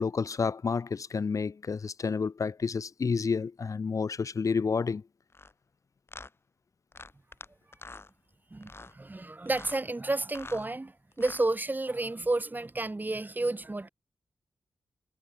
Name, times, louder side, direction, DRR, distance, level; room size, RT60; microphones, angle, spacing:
voice 1, 0.0-5.0, left 5 dB, 60° left, 2.0 m, -30 dB
sound 1, 5.3-5.5 6.1-6.3 6.9-7.5 7.7-8.1 8.6-8.9 9.5-9.8 10.2-10.7 11.1-11.5, left 3 dB, 40° left, 7.2 m, -46 dB
voice 2, 8.5-13.9, right 2 dB, 30° right, 3.5 m, -31 dB
cardioid pair, 45°, 6 cm